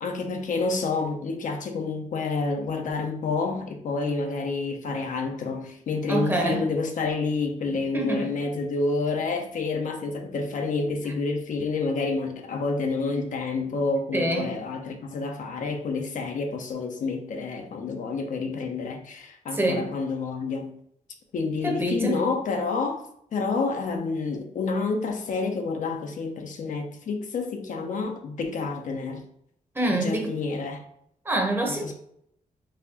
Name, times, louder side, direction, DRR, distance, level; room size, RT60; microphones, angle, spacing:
voice 1, 0.0-20.7 21.3-23.0 23.3-29.3 29.9-30.8 31.8-31.9, left 3 dB, 65° left, 3 dB, 0.6 m, -29 dB
voice 2, 6.1-6.7 7.9-8.4 14.1-14.5 19.5-19.9 21.6-22.2 29.7-30.4 31.2-31.9, right 1 dB, 15° right, 2 dB, 0.8 m, -26 dB
4.0 x 2.9 x 2.8 m, 0.71 s
cardioid pair, 90°, 14 cm